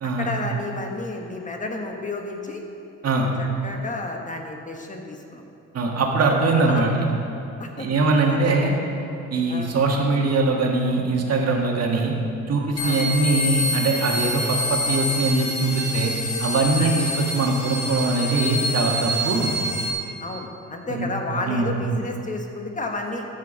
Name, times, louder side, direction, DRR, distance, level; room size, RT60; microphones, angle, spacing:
voice 1, 0.0-2.6 3.2-5.4 6.7-6.9 7.6-7.9 8.3-8.5 9.5-9.7 12.8-13.0 16.8-16.9 20.2-23.2, left 2 dB, 25° left, 2 dB, 1.3 m, -31 dB
voice 2, 5.7-7.1 7.8-8.7 9.3-12.1 12.5-16.1 16.4-19.6 20.9-21.1 21.5-21.7, right 3 dB, 55° right, 0 dB, 1.7 m, -22 dB
sound 1, 12.8-19.9, left 1 dB, 50° left, 2.0 m, -27 dB
13.0 x 6.3 x 5.1 m, 2.7 s
cardioid pair, 90°, 30 cm